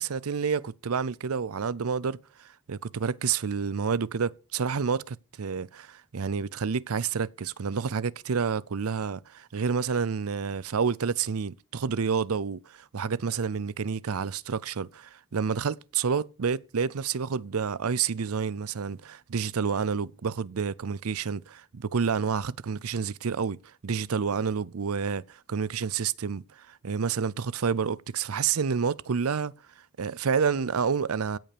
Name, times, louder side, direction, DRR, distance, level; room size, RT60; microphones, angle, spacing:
voice 1, 0.0-2.2 2.7-23.6 23.8-29.5 30.0-31.4, right 6 dB, 80° right, 0.6 m, -29 dB
16.5 x 5.5 x 6.8 m
head